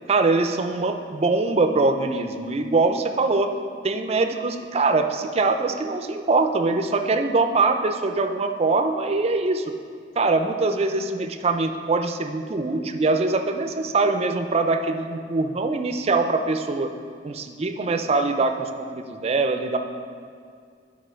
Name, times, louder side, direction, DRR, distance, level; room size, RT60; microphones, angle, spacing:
voice 1, 0.1-3.5 3.8-9.8 10.2-16.9 17.2-19.8, right 3 dB, 35° right, 7 dB, 0.4 m, -23 dB
10.5 x 4.2 x 4.3 m, 2.2 s
head